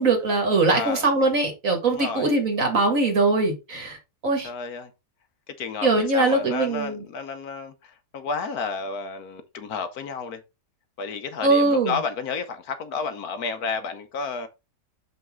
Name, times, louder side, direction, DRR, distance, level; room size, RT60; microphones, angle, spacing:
voice 1, 0.0-4.0 4.2-4.5 5.8-7.0 11.4-12.0, right 3 dB, 50° right, 2.1 m, -21 dB
voice 2, 0.7-1.1 1.8-2.3 4.4-4.9 5.5-10.4 11.0-14.5, left 5 dB, 65° left, 1.2 m, -31 dB
6.4 x 5.5 x 3.6 m
omnidirectional pair, 1.8 m